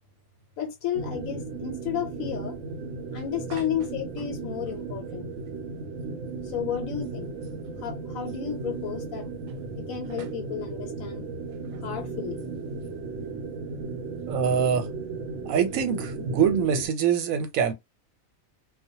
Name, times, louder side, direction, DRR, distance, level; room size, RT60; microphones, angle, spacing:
voice 1, 0.6-2.6 3.1-5.3 6.4-7.4 7.8-9.3 9.8-11.3 11.8-12.5, left 9 dB, 80° left, 1.0 m, -32 dB
sound 1, 0.9-16.9, right 4 dB, 70° right, 0.9 m, -35 dB
voice 2, 14.3-14.9 15.5-17.7, right 7 dB, 90° right, 1.0 m, -24 dB
2.3 x 2.1 x 2.7 m
omnidirectional pair, 1.4 m